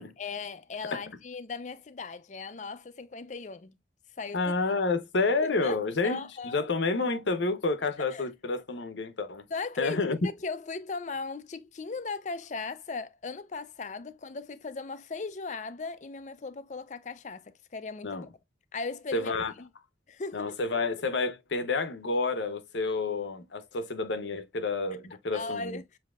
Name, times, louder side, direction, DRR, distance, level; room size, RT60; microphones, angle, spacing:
voice 1, 0.0-3.8 4.2-4.5 5.4-5.8 6.0-6.7 8.1-8.3 9.5-18.3 18.7-19.3 19.6-19.7 20.1-20.6 25.3-25.8, left 4 dB, 40° left, 0.5 m, -37 dB
voice 2, 4.3-9.5 9.8-10.2 18.0-18.3 19.1-19.5 20.3-25.8, left 3 dB, 90° left, 0.8 m, -29 dB
7.3 x 2.8 x 2.3 m
head